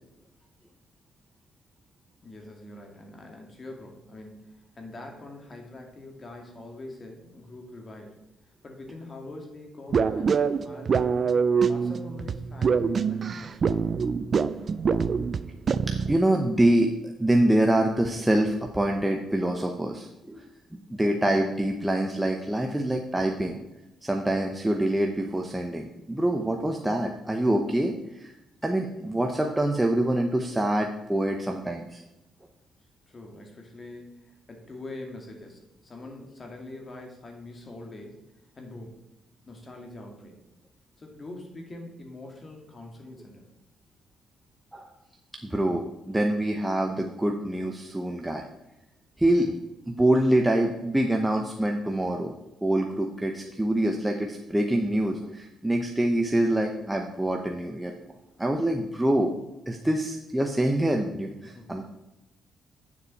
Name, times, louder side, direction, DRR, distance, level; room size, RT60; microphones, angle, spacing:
voice 1, 2.2-8.2 8.6-11.3 11.7-13.6 22.7-22.9 33.1-38.3 38.6-39.0 39.5-40.4 41.0-43.5 61.4-61.8, left 2 dB, 35° left, 2 dB, 2.3 m, -44 dB
sound 1, 9.9-16.2, right 6 dB, 45° right, 0.4 m, -25 dB
voice 2, 16.1-16.9 17.2-20.5 20.9-23.6 24.0-28.3 28.6-32.0 44.7-44.9 45.4-48.4 49.2-49.6 49.9-52.3 52.6-57.9 58.4-59.3 59.7-61.8, right 1 dB, 10° right, 2 dB, 0.9 m, -25 dB
9.1 x 7.1 x 4.2 m, 0.94 s
cardioid pair, 90°, 0 cm